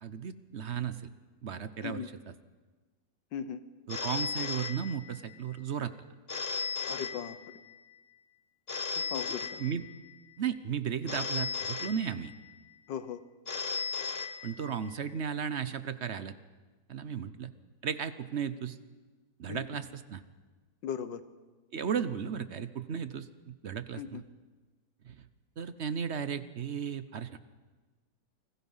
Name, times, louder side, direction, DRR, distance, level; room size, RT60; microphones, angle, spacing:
voice 1, 0.0-1.1 1.4-2.0 3.9-5.9 9.6-9.8 10.4-12.3 14.4-16.3 16.9-17.5 17.8-18.8 19.4-20.2 21.7-24.2 25.0-25.2 25.6-27.4, right 7 dB, 50° right, 12 dB, 0.9 m, -35 dB
voice 2, 3.3-3.6 6.9-7.4 9.1-9.6 12.9-13.2 19.5-19.6 20.8-21.2 24.0-24.2, left 8 dB, 85° left, 12 dB, 1.8 m, -37 dB
Telephone, 3.9-5.4 6.3-7.8 8.7-10.2 11.1-12.6 13.5-15.0, left 5 dB, 40° left, 1.2 m, -36 dB
29.0 x 20.5 x 5.6 m, 1.3 s
omnidirectional pair, 1.9 m